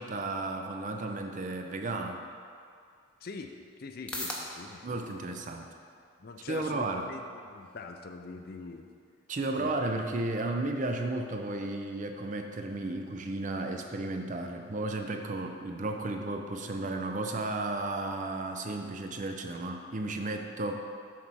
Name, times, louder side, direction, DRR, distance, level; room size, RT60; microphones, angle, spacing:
voice 1, 0.0-2.2 4.8-5.7 6.5-7.1 9.3-20.9, right 2 dB, 40° right, 4 dB, 0.5 m, -33 dB
sound 1, 2.6-19.6, left 1 dB, 5° left, 0.7 m, -50 dB
voice 2, 3.2-3.5 3.8-5.3 6.2-8.9 9.6-9.8, left 4 dB, 50° left, 5 dB, 0.5 m, -43 dB
7.2 x 4.1 x 6.2 m, 2.3 s
head